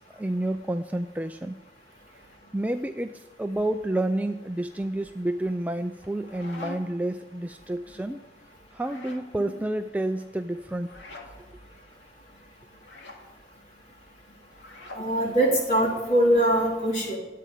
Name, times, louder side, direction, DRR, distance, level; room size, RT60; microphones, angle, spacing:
voice 1, 0.0-1.6 2.5-8.2 8.7-10.9, right 1 dB, 10° right, 7 dB, 0.4 m, -29 dB
sound 1, 6.0-7.1 8.7-9.3 10.8-11.3 12.8-13.2 14.5-15.1, left 2 dB, 85° left, 2.6 m, -43 dB
voice 2, 15.0-17.2, right 1 dB, 40° left, -2 dB, 3.7 m, -22 dB
13.5 x 8.6 x 8.4 m, 1.2 s
head